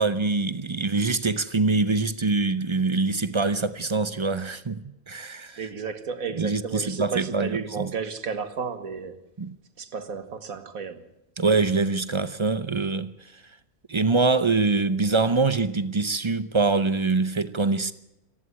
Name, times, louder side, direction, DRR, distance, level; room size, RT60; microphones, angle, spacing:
voice 1, 0.0-5.6 6.4-7.9 9.4-9.5 11.4-13.1 13.9-17.9, right 3 dB, 40° right, 0.4 m, -24 dB
voice 2, 5.6-9.2 9.8-11.1, right 5 dB, 60° right, 1.9 m, -33 dB
19.0 x 15.0 x 9.7 m
omnidirectional pair, 1.7 m